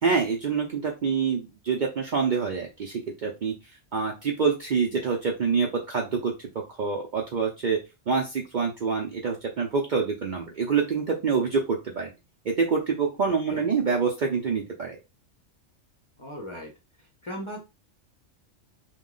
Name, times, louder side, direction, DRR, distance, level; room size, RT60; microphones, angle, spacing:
voice 1, 0.0-3.5 3.9-7.8 8.1-12.1 12.4-15.0, right 5 dB, 55° right, 0 dB, 0.5 m, -26 dB
voice 2, 13.2-13.7 16.2-16.7 17.2-17.6, equal, 30° left, -1 dB, 0.6 m, -37 dB
3.0 x 2.2 x 3.8 m, 0.26 s
omnidirectional pair, 1.3 m